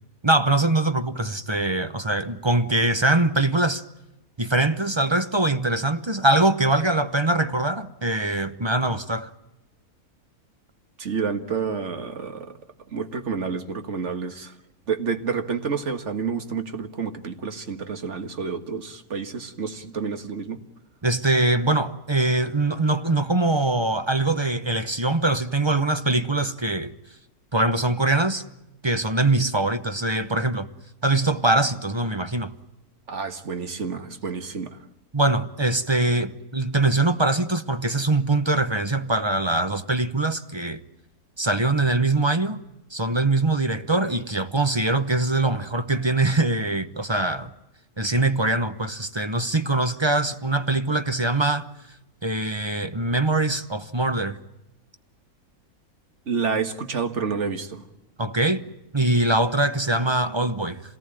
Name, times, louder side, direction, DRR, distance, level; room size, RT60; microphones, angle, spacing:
voice 1, 0.2-3.8 4.4-9.3 21.0-26.9 27.5-28.4 28.8-30.7 31.0-32.5 35.1-40.8 41.4-42.6 42.9-47.5 48.0-51.7 52.2-54.4 58.2-58.6 58.9-60.8, right 2 dB, 25° right, 0.8 m, -23 dB
voice 2, 11.0-12.6 12.9-14.5 14.9-20.6 33.1-34.8 56.3-57.8, right 5 dB, 50° right, 1.9 m, -29 dB
27.0 x 18.5 x 9.0 m
omnidirectional pair, 1.6 m